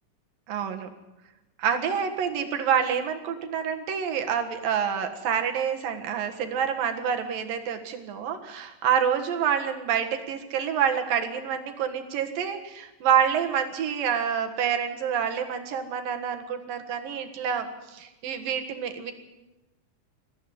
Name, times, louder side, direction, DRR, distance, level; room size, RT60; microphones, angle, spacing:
voice 1, 0.5-0.9 1.6-19.1, right 8 dB, 80° right, 5 dB, 3.4 m, -27 dB
21.5 x 14.5 x 9.7 m, 1.1 s
omnidirectional pair, 4.0 m